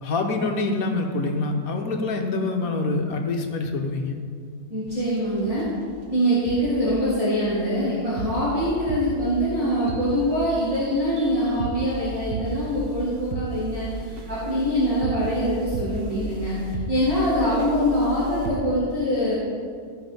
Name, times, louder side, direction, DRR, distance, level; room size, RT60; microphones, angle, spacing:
voice 1, 0.0-4.2, left 3 dB, 70° left, 3 dB, 1.4 m, -25 dB
voice 2, 4.7-5.7 6.1-19.3, equal, 20° right, -12 dB, 3.1 m, -24 dB
sound 1, 4.9-5.2 5.5-5.6 6.5-6.7 7.3-18.5, right 3 dB, 85° right, 1.5 m, -35 dB
14.5 x 5.4 x 5.3 m, 2.1 s
omnidirectional pair, 1.6 m